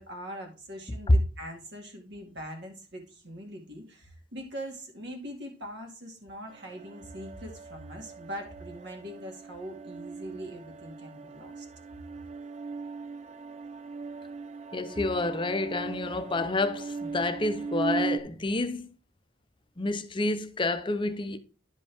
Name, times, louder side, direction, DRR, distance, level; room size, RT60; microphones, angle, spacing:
voice 1, 0.0-11.7, equal, 60° right, 2.2 m, -42 dB
sound 1, 6.5-18.2, right 4 dB, 35° right, 0.5 m, -38 dB
voice 2, 14.7-18.9 19.8-21.4, left 2 dB, 25° left, 0.6 m, -28 dB
11.0 x 5.2 x 3.5 m
head